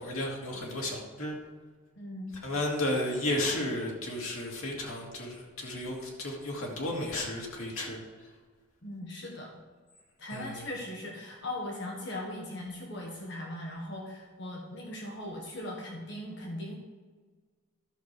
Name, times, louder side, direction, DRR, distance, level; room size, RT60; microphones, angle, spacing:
voice 1, 0.0-1.3 2.4-8.0 10.3-10.7, left 1 dB, 85° left, -2 dB, 2.4 m, -33 dB
voice 2, 2.0-2.3 8.8-9.5 10.2-16.7, left 1 dB, 55° left, -1 dB, 1.6 m, -39 dB
11.5 x 6.9 x 4.7 m, 1.4 s
head